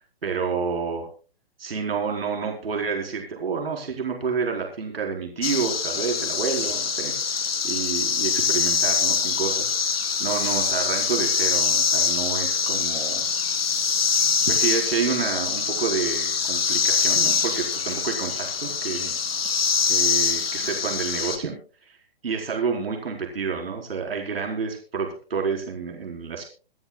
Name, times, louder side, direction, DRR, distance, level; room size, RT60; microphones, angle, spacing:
voice 1, 0.2-1.1 1.6-9.9 10.2-13.3 14.5-19.1 19.9-21.6 21.8-22.0 22.2-26.4, right 5 dB, 70° right, 1 dB, 4.6 m, -29 dB
sound 1, 5.4-21.4, left 6 dB, 75° left, 1.8 m, -24 dB
25.5 x 10.5 x 2.4 m, 0.36 s
hypercardioid pair, 135°, 30 cm